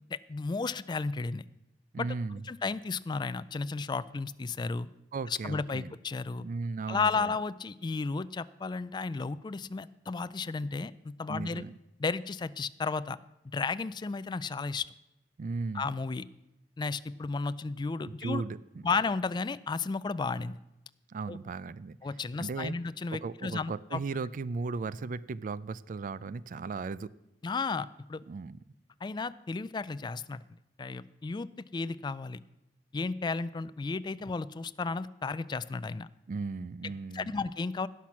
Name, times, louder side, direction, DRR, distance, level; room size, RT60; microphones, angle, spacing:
voice 1, 0.1-1.4 2.0-2.1 2.5-4.9 5.4-6.4 6.9-10.9 11.2-11.6 12.0-13.2 13.5-14.9 15.7-16.2 16.8-18.4 18.8-20.6 21.3-21.4 22.0-24.0 27.4-28.2 29.0-30.4 30.8-32.4 32.9-36.1 36.8-37.9, left 4 dB, 25° left, 16 dB, 0.3 m, -33 dB
voice 2, 1.9-2.4 5.1-5.9 6.4-7.3 11.3-11.8 15.4-15.9 18.1-18.6 21.1-22.0 22.4-22.7 23.1-27.1 28.3-28.6 36.3-37.4, right 4 dB, 50° right, 18 dB, 0.4 m, -36 dB
17.0 x 5.9 x 5.9 m, 0.90 s
head